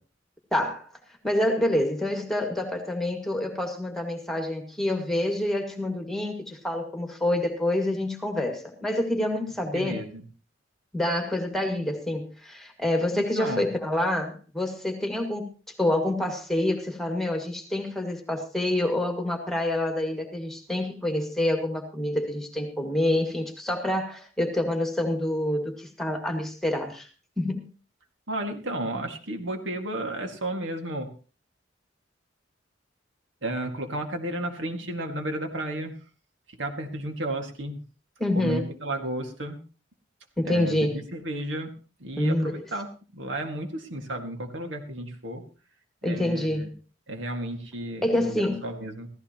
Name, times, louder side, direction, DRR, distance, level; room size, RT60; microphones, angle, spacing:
voice 1, 0.5-0.9 1.2-10.0 10.9-15.5 15.8-27.1 27.4-27.7 38.2-38.7 40.4-41.0 42.2-42.6 46.0-46.7 48.0-48.6, left 1 dB, ahead, 3 dB, 1.9 m, -27 dB
voice 2, 9.7-10.2 13.1-13.7 28.3-31.1 33.4-35.9 36.6-37.8 38.3-39.6 40.5-41.7 42.0-42.9 43.1-45.4 46.0-46.7 47.1-49.1, right 1 dB, 75° right, 4 dB, 2.0 m, -33 dB
15.5 x 14.5 x 3.0 m, 0.37 s
head